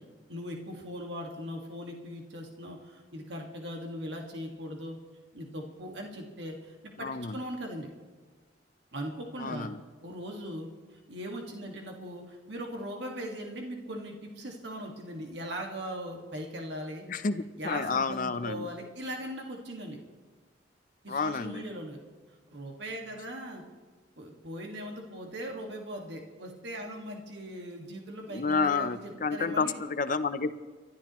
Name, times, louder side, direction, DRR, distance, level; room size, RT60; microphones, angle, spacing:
voice 1, 0.3-5.0 5.3-7.9 8.9-9.7 10.0-17.1 17.6-20.0 21.0-22.0 22.5-23.6 24.2-29.7, equal, 70° right, 1 dB, 1.9 m, -39 dB
voice 2, 7.0-7.4 9.4-9.8 17.1-18.7 21.1-21.6 28.3-30.6, left 4 dB, 45° left, 11 dB, 0.6 m, -30 dB
26.5 x 12.5 x 3.1 m, 1.4 s
head